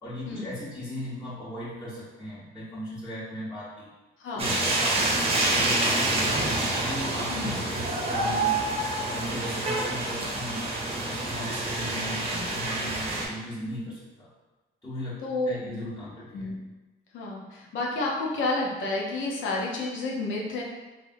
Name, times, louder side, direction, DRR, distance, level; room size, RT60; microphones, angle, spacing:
voice 1, 0.0-3.9 4.3-6.4 6.8-8.7 9.1-10.7 11.0-14.3 14.8-16.5, left 1 dB, 15° left, -13 dB, 1.2 m, -38 dB
voice 2, 4.2-4.6 7.3-7.6 12.2-12.5 15.2-15.8 16.3-16.7 17.1-20.6, left 2 dB, 80° left, -2 dB, 0.7 m, -30 dB
sound 1, 4.4-13.3, right 2 dB, 30° right, 0.8 m, -27 dB
3.3 x 2.6 x 2.6 m, 1.2 s
cardioid pair, 90°, 20 cm